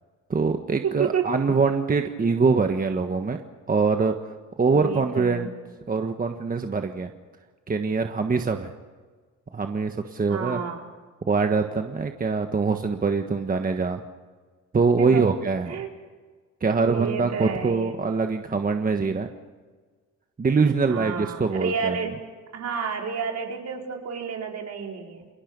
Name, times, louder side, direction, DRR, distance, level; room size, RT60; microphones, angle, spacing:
voice 1, 0.3-3.4 3.7-4.2 4.6-5.5 5.9-7.1 7.7-8.7 9.5-10.6 11.2-14.0 14.7-15.8 16.6-19.3 20.4-22.0, right 4 dB, 30° right, 5 dB, 1.4 m, -23 dB
voice 2, 0.8-1.3 4.7-5.5 10.3-10.9 15.0-15.4 15.6-15.9 16.8-18.0 20.9-22.2 22.5-25.3, right 6 dB, 60° right, 1 dB, 4.2 m, -30 dB
30.0 x 20.0 x 5.4 m, 1.5 s
cardioid pair, 90°, 30 cm